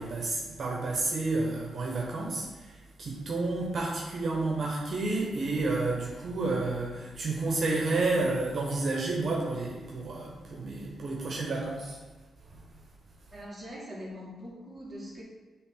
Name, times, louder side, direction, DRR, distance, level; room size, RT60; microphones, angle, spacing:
voice 1, 0.0-12.0 12.5-12.6, right 3 dB, 55° right, -2 dB, 1.1 m, -30 dB
voice 2, 13.3-15.2, equal, 10° right, -6 dB, 1.9 m, -42 dB
8.0 x 3.3 x 3.9 m, 1.3 s
cardioid pair, 110°, 0 cm